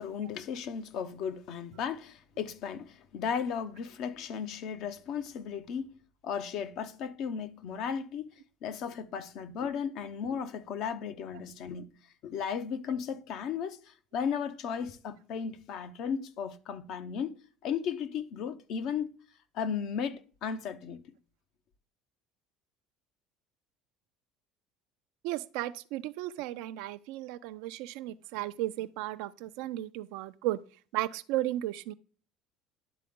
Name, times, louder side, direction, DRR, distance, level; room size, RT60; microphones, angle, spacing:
voice 1, 0.0-5.9 6.2-8.3 8.6-11.9 12.2-19.1 19.5-21.0, left 7 dB, 65° left, 0.8 m, -35 dB
voice 2, 25.2-30.6 30.9-31.9, right 15 dB, 80° right, 0.4 m, -34 dB
11.0 x 3.8 x 3.6 m
supercardioid pair, 100°, 0 cm